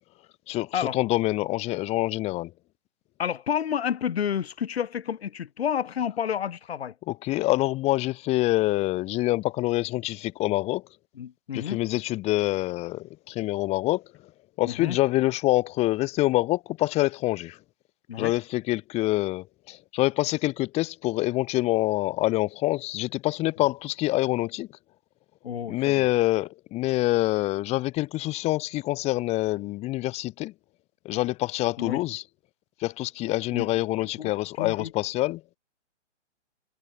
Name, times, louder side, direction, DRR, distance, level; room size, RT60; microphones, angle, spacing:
voice 1, 0.5-2.5 7.1-10.8 11.5-14.0 14.6-17.6 18.2-24.7 25.7-30.5 31.0-32.2 32.8-35.4, left 18 dB, 15° left, 2.9 m, -26 dB
voice 2, 3.2-6.9 11.2-11.8 14.7-15.0 18.1-18.3 25.4-26.1 31.8-32.0 33.5-33.7 34.0-34.3 34.6-34.9, left 8 dB, 55° left, 7.7 m, -30 dB
hypercardioid pair, 160°, 36 cm